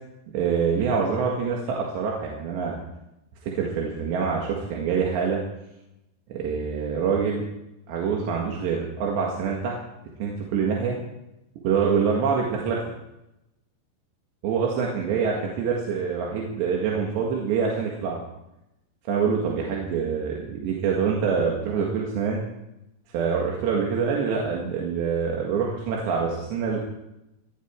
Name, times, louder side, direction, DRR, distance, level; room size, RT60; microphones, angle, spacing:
voice 1, 0.3-2.8 3.4-5.4 6.3-7.5 7.9-9.8 10.2-11.0 11.6-12.8 14.4-18.2 19.1-22.4 23.1-26.9, right 6 dB, 80° right, -1 dB, 4.1 m, -25 dB
20.0 x 12.5 x 4.6 m, 0.90 s
omnidirectional pair, 5.0 m